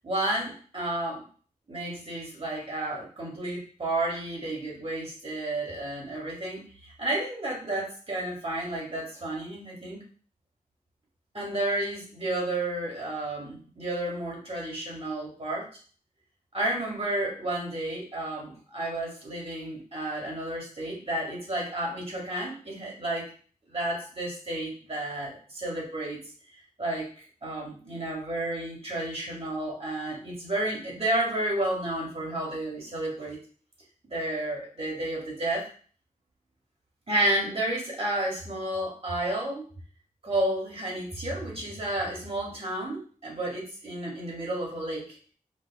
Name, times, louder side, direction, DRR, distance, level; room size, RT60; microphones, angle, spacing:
voice 1, 0.0-1.2 1.7-10.0 11.3-15.7 16.5-23.3 23.7-26.2 26.8-27.1 27.4-33.4 34.1-35.7 37.1-39.6 40.2-45.2, right 1 dB, 40° right, -3 dB, 1.8 m, -31 dB
5.3 x 2.4 x 2.3 m, 0.42 s
cardioid pair, 60°, 15 cm